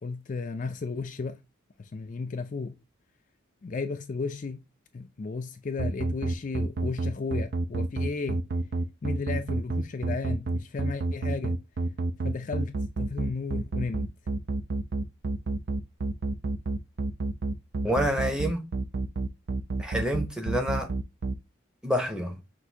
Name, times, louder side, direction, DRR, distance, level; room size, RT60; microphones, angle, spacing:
voice 1, 0.0-1.4 1.8-2.7 3.6-4.6 4.9-8.4 9.0-11.5 12.2-14.1, left 4 dB, 40° left, 0.4 m, -34 dB
sound 1, 5.8-21.3, right 3 dB, 50° right, 0.4 m, -28 dB
voice 2, 17.8-18.7 19.8-20.9 21.8-22.4, equal, 5° right, 0.8 m, -28 dB
6.1 x 2.6 x 2.7 m
head